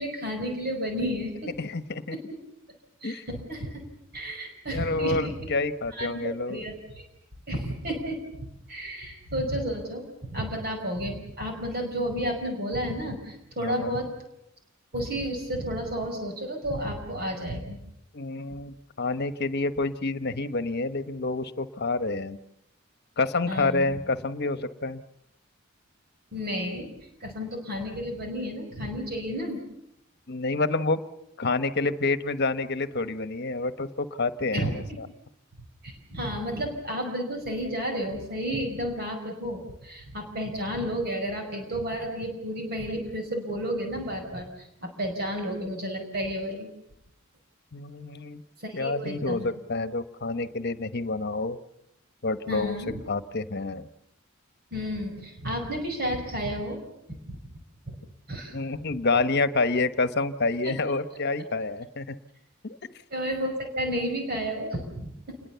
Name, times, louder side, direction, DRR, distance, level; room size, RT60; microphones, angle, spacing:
voice 1, 0.0-1.6 2.1-2.2 3.0-3.8 4.1-5.5 5.9-7.0 7.5-14.1 14.9-17.8 23.4-24.0 26.3-26.9 27.2-29.6 34.5-34.7 35.8-46.7 48.6-49.4 52.5-53.0 54.7-56.8 57.3-57.4 57.9-58.0 58.3-58.6 59.1-59.2 60.6-60.7 63.1-65.4, equal, 50° right, 3 dB, 4.9 m, -32 dB
voice 2, 1.6-2.1 3.0-3.2 4.7-6.6 13.6-14.0 18.1-22.4 23.2-25.0 30.3-31.0 31.4-35.1 47.7-48.4 48.7-51.6 52.2-52.8 53.1-53.9 58.5-62.2 62.6-62.8, left 3 dB, 55° left, 11 dB, 1.2 m, -28 dB
27.5 x 21.0 x 7.0 m, 0.80 s
head